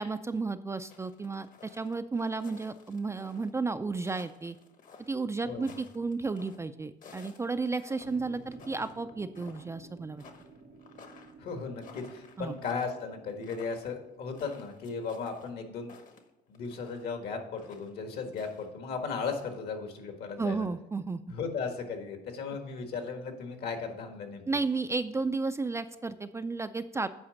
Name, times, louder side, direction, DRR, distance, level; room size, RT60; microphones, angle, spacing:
voice 1, 0.0-4.6 5.1-10.2 12.4-12.6 20.4-21.2 24.5-27.1, right 3 dB, 15° right, 10 dB, 0.3 m, -33 dB
sound 1, 0.9-3.5 3.9-6.6 7.0-9.1 9.4-9.8 10.2-17.1 17.6-18.7 19.0-19.6, left 5 dB, 50° left, 1.1 m, -54 dB
sound 2, 8.0-14.3, right 3 dB, 80° right, 1.9 m, -54 dB
voice 2, 11.4-15.9 16.5-20.7 21.3-24.5, left 5 dB, 70° left, 5 dB, 1.7 m, -36 dB
8.6 x 5.0 x 6.4 m, 0.94 s
cardioid pair, 110°, 17 cm